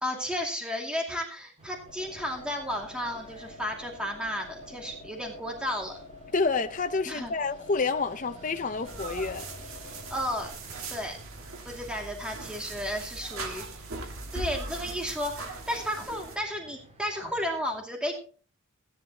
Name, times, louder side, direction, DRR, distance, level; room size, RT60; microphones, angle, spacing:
voice 1, 0.0-6.0 7.1-7.3 10.1-10.5 10.9-11.2 11.7-13.7 14.0-18.1, equal, 5° right, 2.3 m, -33 dB
sound 1, 1.6-17.5, right 1 dB, 30° right, 2.4 m, -53 dB
sound 2, 1.9-10.5, left 2 dB, 15° left, 2.7 m, -48 dB
voice 2, 6.3-9.5, left 4 dB, 35° left, 0.6 m, -28 dB
sound 3, 8.9-16.4, right 3 dB, 70° right, 2.0 m, -40 dB
16.5 x 10.5 x 2.9 m
head